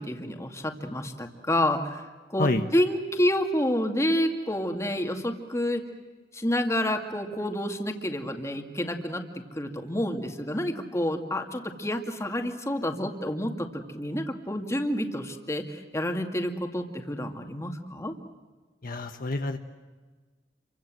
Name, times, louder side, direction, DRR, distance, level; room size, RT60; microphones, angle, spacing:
voice 1, 0.0-2.0 2.3-5.8 6.3-9.2 9.6-18.1, left 1 dB, 15° left, 5 dB, 2.3 m, -29 dB
voice 2, 18.8-19.6, left 2 dB, 55° left, 6 dB, 1.2 m, -27 dB
29.5 x 24.5 x 7.7 m, 1.3 s
head